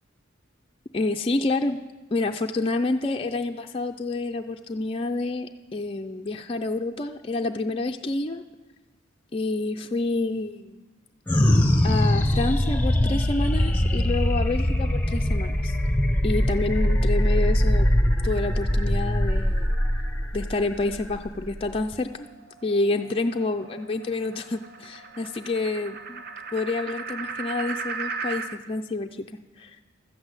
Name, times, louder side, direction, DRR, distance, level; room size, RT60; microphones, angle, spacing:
voice 1, 0.9-1.8 2.1-8.4 9.3-10.8 11.8-15.8 16.2-17.9 18.2-19.7 20.3-22.3 22.6-26.2 26.5-29.3 29.6-29.8, left 2 dB, 25° left, 4 dB, 0.4 m, -28 dB
sound 1, 11.3-21.9, left 1 dB, 10° left, 0.9 m, -22 dB
sound 2, 21.9-28.6, right 4 dB, 50° right, 0.7 m, -37 dB
12.5 x 8.2 x 8.0 m, 1.2 s
head